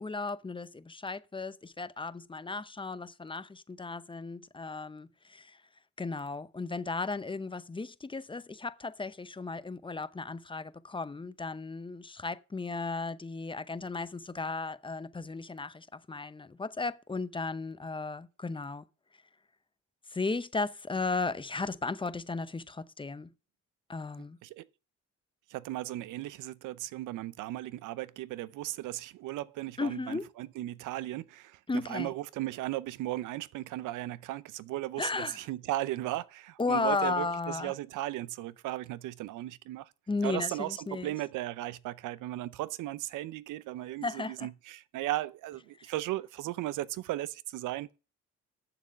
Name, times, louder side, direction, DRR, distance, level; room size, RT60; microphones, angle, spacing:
voice 1, 0.0-5.6 6.0-18.8 20.1-23.3 23.9-24.4 29.8-30.3 31.7-32.1 35.0-35.5 36.6-37.7 40.1-41.1 44.0-44.5 45.8-45.9, left 3 dB, 15° left, 0.7 m, -35 dB
voice 2, 25.5-31.6 31.9-35.1 35.4-39.9 40.2-47.9, right 15 dB, 85° right, 0.6 m, -36 dB
8.9 x 7.1 x 6.8 m
cardioid pair, 90°, 30 cm